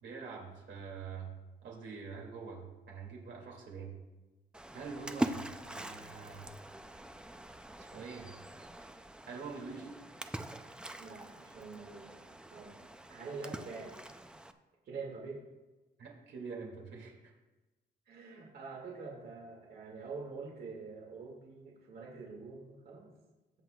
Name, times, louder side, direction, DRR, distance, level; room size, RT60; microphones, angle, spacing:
voice 1, 0.0-1.3 1.6-3.9 4.7-6.5 7.8-8.3 9.3-9.9 16.0-17.1, right 5 dB, 80° right, -1 dB, 2.5 m, -45 dB
Splash splatter, 4.5-14.5, right 1 dB, 5° right, 0.4 m, -43 dB
voice 2, 11.5-12.2 12.5-12.8 13.1-14.0 14.9-15.4 18.1-23.1, right 4 dB, 55° right, -3 dB, 2.2 m, -45 dB
21.0 x 7.8 x 2.4 m, 1.1 s
cardioid pair, 180°, 19 cm